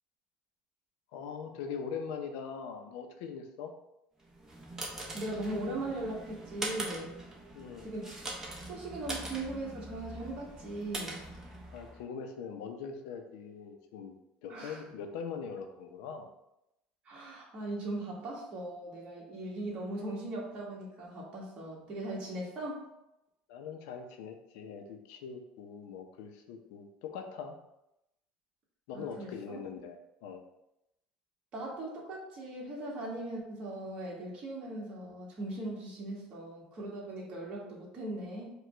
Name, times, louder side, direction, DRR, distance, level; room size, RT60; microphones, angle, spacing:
voice 1, 1.1-3.7 7.5-7.9 11.7-14.2 14.4-16.3 23.5-27.6 28.9-30.4, left 6 dB, 85° left, 5 dB, 0.6 m, -42 dB
sound 1, 4.3-12.0, right 1 dB, 15° right, 0.9 m, -42 dB
voice 2, 5.1-7.1 7.8-8.2 8.6-11.3 14.5-14.8 17.0-22.8 28.9-29.6 31.5-38.5, right 1 dB, 35° right, -4 dB, 1.5 m, -39 dB
4.9 x 2.3 x 4.5 m, 0.87 s
cardioid pair, 150°, 3 cm